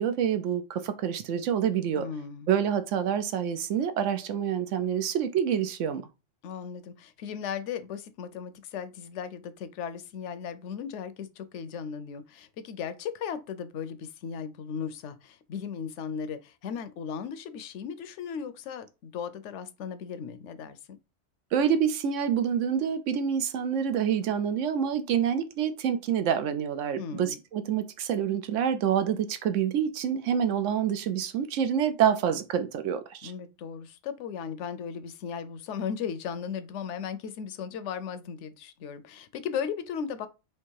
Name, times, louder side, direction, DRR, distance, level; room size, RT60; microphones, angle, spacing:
voice 1, 0.0-2.0 2.5-6.1 21.5-33.3, right 8 dB, 80° right, 1.0 m, -27 dB
voice 2, 1.9-2.5 6.4-21.0 27.0-27.4 33.2-40.3, left 7 dB, 75° left, 0.9 m, -36 dB
3.5 x 2.9 x 4.5 m
omnidirectional pair, 1.3 m